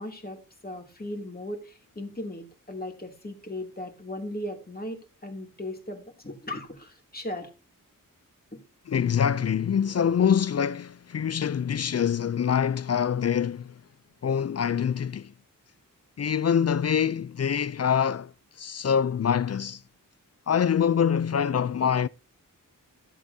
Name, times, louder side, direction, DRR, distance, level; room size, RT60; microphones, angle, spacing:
voice 1, 0.0-7.5 8.5-8.6, left 1 dB, 25° left, 2.7 m, -37 dB
voice 2, 8.9-13.7 14.2-15.3 16.2-18.3 18.6-19.8 20.5-22.1, left 8 dB, 50° left, 0.4 m, -25 dB
14.0 x 8.2 x 2.7 m
wide cardioid pair, 85°, 34 cm